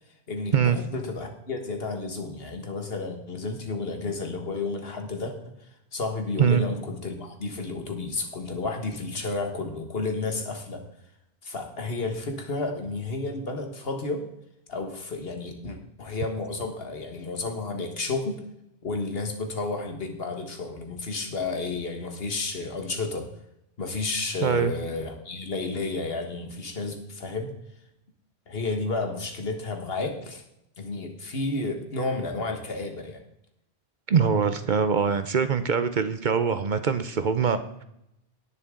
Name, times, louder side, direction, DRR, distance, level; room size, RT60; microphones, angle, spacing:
voice 1, 0.3-10.8 11.4-14.3 14.7-18.4 18.8-23.3 23.8-27.5 28.5-30.4 30.8-33.2, left 3 dB, 65° left, 5 dB, 1.7 m, -31 dB
voice 2, 24.4-24.7 34.1-37.8, right 6 dB, 50° right, 10 dB, 0.8 m, -23 dB
18.5 x 6.9 x 3.7 m, 0.81 s
omnidirectional pair, 1.1 m